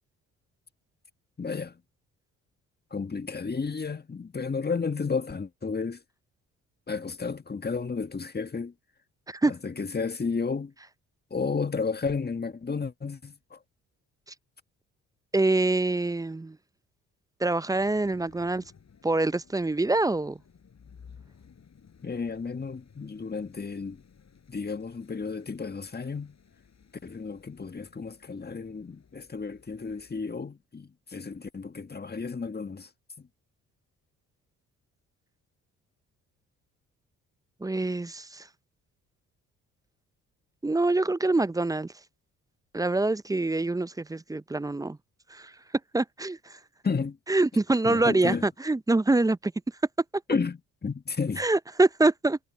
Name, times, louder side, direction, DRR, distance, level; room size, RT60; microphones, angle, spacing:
voice 1, 1.4-1.8 2.9-6.0 6.9-8.7 9.5-10.7 11.3-13.6 22.0-24.0 24.5-26.3 27.0-32.9 46.8-47.2 47.8-48.4 50.3-51.4, left 5 dB, 25° left, 1.6 m, -32 dB
voice 2, 15.3-16.6 17.4-18.6 19.0-20.4 37.6-38.5 40.6-41.9 42.7-45.0 45.3-45.5 45.9-46.6 47.3-49.5 51.4-52.4, right 2 dB, 10° right, 0.5 m, -25 dB
sound 1, 17.7-30.2, left 6 dB, 45° left, 6.2 m, -57 dB
hypercardioid pair, 50°, 37 cm